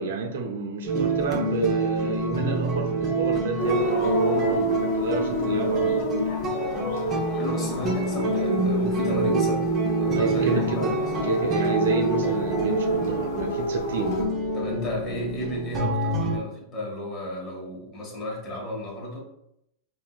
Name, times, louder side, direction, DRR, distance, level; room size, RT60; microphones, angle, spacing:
voice 1, 0.0-6.3 10.1-11.0 11.2-14.2, right 4 dB, 80° right, 0.6 m, -30 dB
sound 1, 0.9-16.4, right 2 dB, 30° right, 1.0 m, -27 dB
sound 2, 3.6-14.3, equal, 70° left, 1.0 m, -29 dB
voice 2, 7.3-11.0 14.5-19.2, equal, 30° left, 1.5 m, -33 dB
3.7 x 2.7 x 2.3 m
hypercardioid pair, 115°, 0 cm